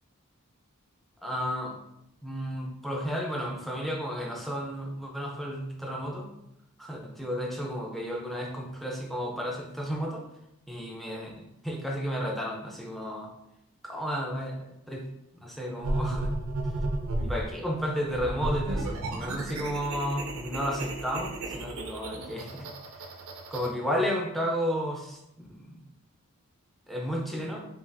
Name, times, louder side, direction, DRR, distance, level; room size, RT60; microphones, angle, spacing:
voice 1, 1.2-1.8 2.2-6.3 6.8-10.3 10.7-13.3 13.8-15.1 15.3-16.3 17.2-22.7 23.0-23.1 23.5-25.8 26.9-27.7, equal, ahead, 0 dB, 0.5 m, -33 dB
sound 1, 15.8-17.4 18.1-23.7, right 2 dB, 70° right, 0.6 m, -33 dB
5.4 x 2.5 x 2.6 m, 0.82 s
head